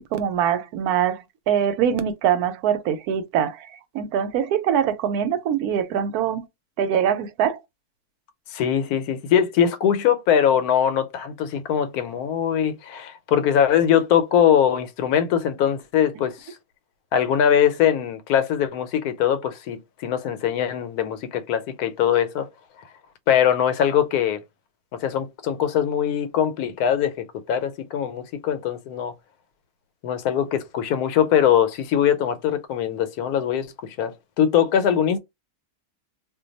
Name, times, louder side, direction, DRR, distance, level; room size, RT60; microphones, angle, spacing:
voice 1, 0.0-3.7 3.9-6.4 6.8-7.6, right 9 dB, 85° right, 1.1 m, -23 dB
voice 2, 8.5-16.5 17.1-22.5 23.3-24.4 24.9-29.1 30.0-35.2, left 9 dB, 90° left, 1.1 m, -22 dB
2.5 x 2.2 x 3.9 m
omnidirectional pair, 1.6 m